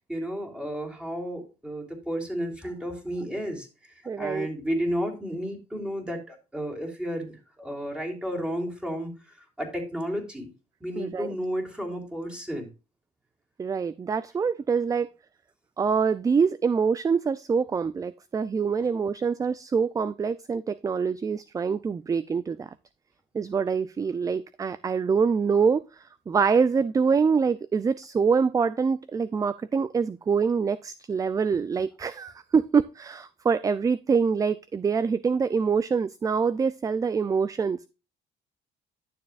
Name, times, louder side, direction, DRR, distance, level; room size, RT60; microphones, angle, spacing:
voice 1, 0.0-10.5 10.8-12.7, equal, 5° right, 0 dB, 3.2 m, -32 dB
voice 2, 4.1-4.5 11.0-11.3 13.6-15.1 15.8-22.7 23.3-37.9, right 5 dB, 20° right, 17 dB, 0.3 m, -25 dB
11.5 x 6.9 x 2.4 m, 0.30 s
cardioid pair, 110°, 17 cm